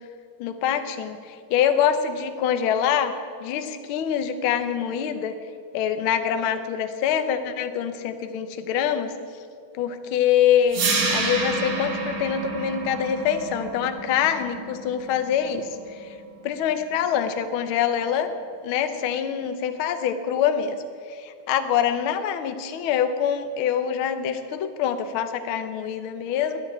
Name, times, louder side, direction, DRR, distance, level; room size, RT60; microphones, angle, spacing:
voice 1, 0.4-3.1 3.4-5.3 5.7-9.1 9.8-10.8 11.1-15.7 16.0-16.1 16.4-18.3 18.6-20.8 21.1-26.6, left 9 dB, 85° left, 8 dB, 1.1 m, -25 dB
sound 1, 10.7-16.7, right 3 dB, 55° right, 2.9 m, -29 dB
11.5 x 10.0 x 8.4 m, 2.3 s
omnidirectional pair, 3.6 m